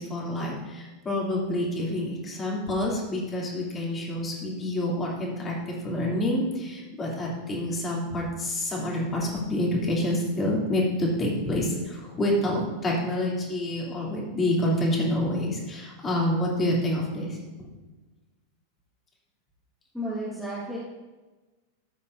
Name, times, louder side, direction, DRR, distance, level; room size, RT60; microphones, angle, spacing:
voice 1, 0.0-17.4, left 1 dB, 20° left, -3 dB, 2.9 m, -27 dB
voice 2, 19.9-20.8, equal, ahead, -8 dB, 1.8 m, -32 dB
13.0 x 8.7 x 2.7 m, 1.2 s
figure-of-eight pair, 90°, 0 cm